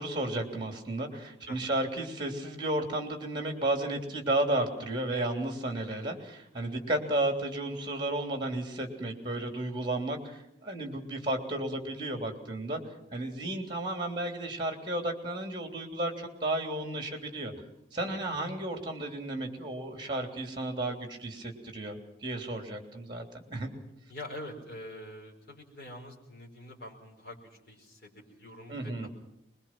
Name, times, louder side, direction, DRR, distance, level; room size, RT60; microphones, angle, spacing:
voice 1, 0.0-12.8 13.1-17.5 17.9-23.2 23.5-23.7 28.7-29.1, right 1 dB, 25° right, 5 dB, 3.2 m, -33 dB
voice 2, 24.1-29.1, left 1 dB, 55° left, -1 dB, 5.0 m, -45 dB
24.0 x 22.0 x 6.1 m, 0.80 s
head